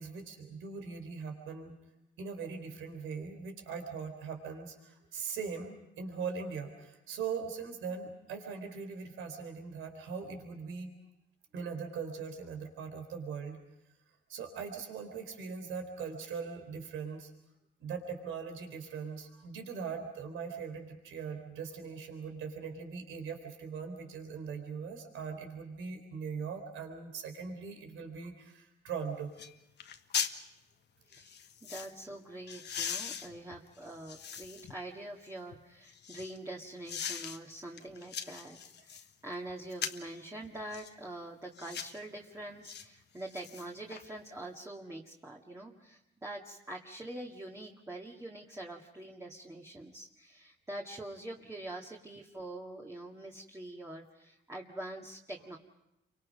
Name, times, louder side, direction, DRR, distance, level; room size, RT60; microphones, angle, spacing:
voice 1, 0.0-1.7 2.2-10.9 11.5-13.6 14.3-17.3 17.8-29.3, right 5 dB, 85° right, 4 dB, 4.0 m, -40 dB
sound 1, 28.9-29.0 29.4-29.5 29.8-30.4 31.1-31.9 32.5-34.7 35.2-36.4 36.9-37.4 37.8-39.1 39.7-40.1 40.7-40.9 41.5-42.0 42.6-42.8 43.2-44.0 44.4-44.5, left 7 dB, 60° left, 1.3 m, -39 dB
voice 2, 31.1-55.6, right 1 dB, 15° right, -2 dB, 2.1 m, -45 dB
29.5 x 24.5 x 5.4 m, 0.87 s
cardioid pair, 90°, 20 cm